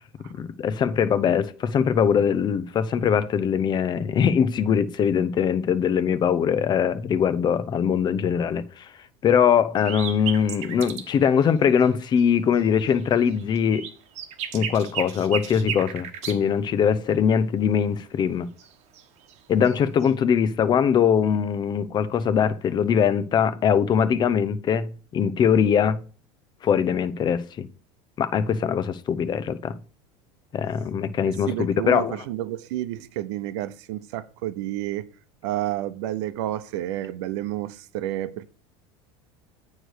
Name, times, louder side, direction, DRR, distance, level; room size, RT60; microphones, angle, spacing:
voice 1, 0.4-8.9 9.2-13.9 14.5-18.5 19.5-26.0 26.6-27.7 28.2-29.8 30.5-32.2, left 7 dB, 30° left, 0.6 m, -22 dB
sound 1, 9.8-11.1 11.4-11.5 11.8-12.3 12.5-16.4 18.6-19.4 19.6-20.1, right 9 dB, 50° right, 1.1 m, -34 dB
voice 2, 31.2-35.1 35.4-38.5, right 13 dB, 80° right, 0.7 m, -30 dB
9.1 x 3.2 x 6.5 m
supercardioid pair, 130°, 15 cm